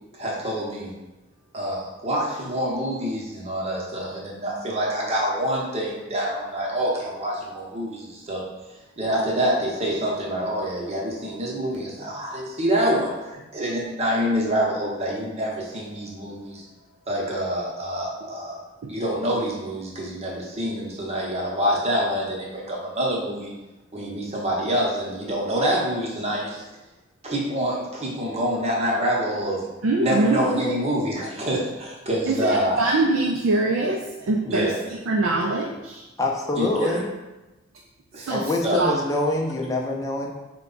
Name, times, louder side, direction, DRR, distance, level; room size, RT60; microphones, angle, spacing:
voice 1, 0.1-0.9 1.5-8.5 9.0-16.6 17.1-18.6 18.9-23.5 23.9-26.6 27.2-29.6 30.0-32.8 34.4-34.8 36.6-37.0 38.1-38.3 38.6-38.8, equal, 35° right, -3 dB, 0.9 m, -26 dB
voice 2, 29.8-30.7 32.3-34.7 35.1-36.0 36.8-37.0 38.2-39.0, right 2 dB, 75° right, 0 dB, 0.4 m, -24 dB
voice 3, 36.2-37.1 38.3-40.3, left 2 dB, 15° left, -1 dB, 0.5 m, -25 dB
4.5 x 2.2 x 3.9 m, 1.1 s
head